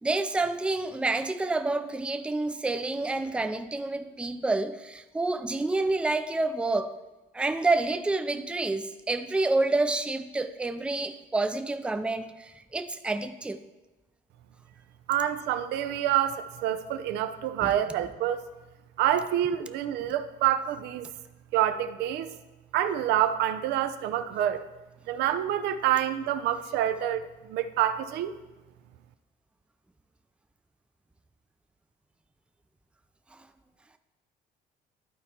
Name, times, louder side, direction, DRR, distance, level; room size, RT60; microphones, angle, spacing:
voice 1, 0.0-6.9 7.3-13.6 17.6-17.7, right 2 dB, 5° right, 9 dB, 0.4 m, -28 dB
voice 2, 15.1-18.4 19.0-21.1 21.5-22.3 22.7-24.6 25.1-28.3, right 11 dB, 85° right, 10 dB, 0.5 m, -27 dB
11.5 x 4.4 x 4.2 m, 1.1 s
cardioid pair, 110°, 17 cm